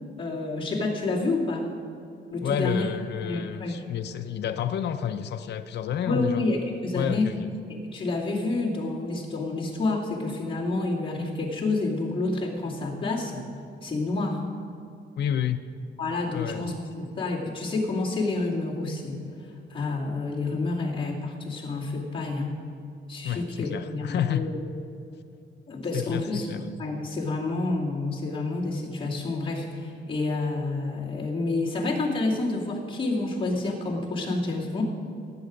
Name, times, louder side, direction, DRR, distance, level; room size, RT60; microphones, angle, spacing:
voice 1, 0.2-1.7 2.3-2.9 3.2-3.8 6.0-7.3 7.7-13.4 13.8-14.4 16.0-19.2 19.7-22.6 23.1-24.6 25.7-26.5 26.8-34.8, left 2 dB, 25° left, -5 dB, 2.3 m, -29 dB
voice 2, 2.4-6.4 6.9-7.4 15.2-15.6 16.3-16.7 23.2-24.4 25.9-26.6, left 9 dB, 55° left, 7 dB, 0.5 m, -29 dB
18.0 x 7.6 x 5.1 m, 2.6 s
wide cardioid pair, 160°, 20 cm